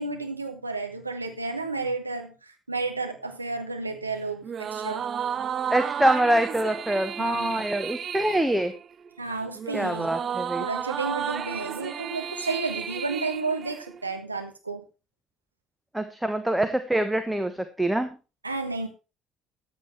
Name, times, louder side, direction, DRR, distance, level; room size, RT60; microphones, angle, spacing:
voice 1, 0.0-5.0 6.6-6.7 7.2-7.7 9.2-10.1 10.6-14.8 18.4-18.9, right 3 dB, 85° right, 5 dB, 1.5 m, -32 dB
sound 1, 4.4-14.1, right 8 dB, 40° right, 0.7 m, -33 dB
voice 2, 5.7-8.7 9.7-10.6 15.9-18.1, right 1 dB, 5° right, 10 dB, 1.2 m, -25 dB
14.0 x 8.5 x 4.5 m, 0.31 s
figure-of-eight pair, 55°, 0 cm